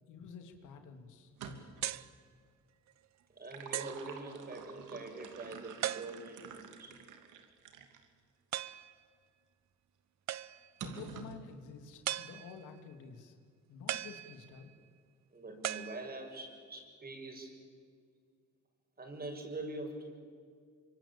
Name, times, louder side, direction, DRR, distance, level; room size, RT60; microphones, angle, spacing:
voice 1, 0.1-1.3 10.8-13.4 13.7-14.7, left 5 dB, 85° left, 6 dB, 3.0 m, -50 dB
sound 1, 1.2-1.9 3.2-8.1 8.7-8.8 10.8-11.4, right 6 dB, 85° right, 2.8 m, -49 dB
sound 2, 1.8-2.2 2.9-3.0 3.7-4.1 5.8-6.5 8.5-8.9 10.3-10.8 12.0-12.7 13.9-14.7 15.6-16.5, right 12 dB, 65° right, 0.9 m, -39 dB
voice 2, 3.3-7.0 15.3-17.6 19.0-20.1, right 2 dB, 30° right, 4 dB, 6.8 m, -44 dB
25.5 x 24.5 x 8.8 m, 2.1 s
cardioid pair, 90°, 30 cm